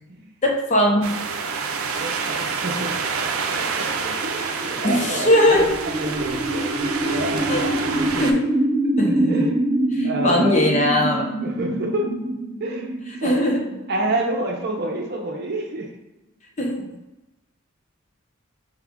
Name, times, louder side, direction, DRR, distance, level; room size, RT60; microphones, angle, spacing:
voice 1, 0.4-1.1 4.8-5.7 7.5-7.6 8.2-8.4 9.0-9.5 9.9-11.3 13.2-13.6 16.6-16.8, left 1 dB, 35° left, -1 dB, 0.7 m, -20 dB
sound 1, 1.0-8.3, right 5 dB, 90° right, 0.5 m, -27 dB
voice 2, 2.0-2.9 3.5-7.8 8.0-8.3 9.1-9.5 10.0-10.6 11.4-12.1 12.6-12.9 13.2-13.4 13.9-15.9, right 2 dB, 50° right, 1 dB, 0.6 m, -29 dB
sound 2, 3.9-15.6, right 1 dB, 15° right, 0.6 m, -26 dB
4.8 x 2.4 x 3.5 m, 1.0 s
head